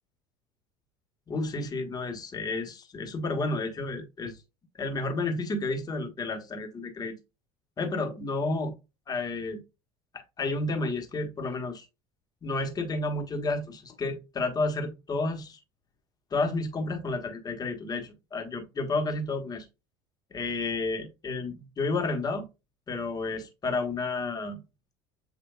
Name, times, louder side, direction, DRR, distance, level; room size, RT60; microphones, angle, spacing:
voice 1, 1.3-4.4 4.8-7.1 7.8-8.7 9.1-9.6 10.1-11.8 12.4-15.6 16.3-19.6 20.3-22.4 22.9-24.6, left 3 dB, 30° left, 1.4 m, -31 dB
7.8 x 2.8 x 2.3 m
supercardioid pair, 95°, 13 cm